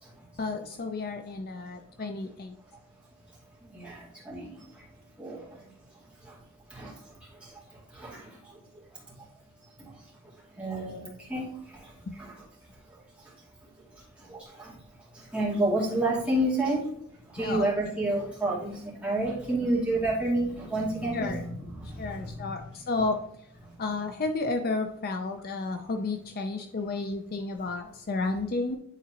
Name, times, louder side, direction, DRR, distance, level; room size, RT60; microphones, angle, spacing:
voice 1, 0.4-2.6 12.1-12.2 17.4-17.7 21.1-21.4 22.0-23.2 23.8-28.8, left 3 dB, 45° left, 6 dB, 0.5 m, -32 dB
voice 2, 3.6-4.9 5.2-5.7 6.2-6.4 6.7-9.0 9.8-10.1 10.5-12.4 12.9-13.3 13.8-16.9 17.3-22.5 23.6-23.7, right 1 dB, 5° right, -7 dB, 2.5 m, -31 dB
9.9 x 4.0 x 2.9 m, 0.73 s
head